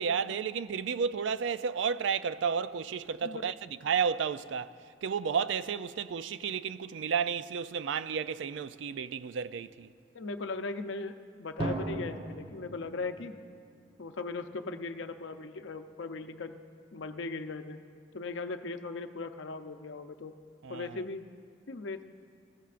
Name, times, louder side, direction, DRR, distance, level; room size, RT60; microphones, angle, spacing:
voice 1, 0.0-4.7 5.0-9.9 20.6-21.0, right 6 dB, 80° right, 0.4 m, -32 dB
voice 2, 10.1-13.4 14.0-16.6 16.9-17.8 18.1-20.3 20.7-21.3 21.7-22.0, left 3 dB, 85° left, 0.6 m, -38 dB
Drum, 11.6-14.3, right 2 dB, 30° right, 0.8 m, -38 dB
20.0 x 14.0 x 2.5 m
head